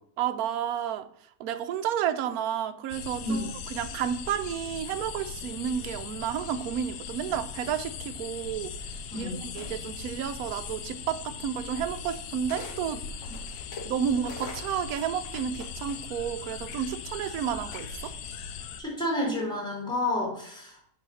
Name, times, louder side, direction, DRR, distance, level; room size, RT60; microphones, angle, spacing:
voice 1, 0.2-1.1 1.4-8.7 9.1-13.0 13.8-18.1, right 9 dB, 70° right, 9 dB, 1.1 m, -31 dB
sound 1, 2.9-18.8, left 6 dB, 80° left, 1.3 m, -39 dB
sound 2, 9.5-10.1 11.2-11.3 12.5-12.8 13.2-16.3 17.7-18.2, left 3 dB, 50° left, 1.6 m, -44 dB
voice 2, 18.8-20.8, left 1 dB, 5° left, -3 dB, 3.8 m, -30 dB
8.5 x 4.2 x 6.3 m, 0.68 s
omnidirectional pair, 1.7 m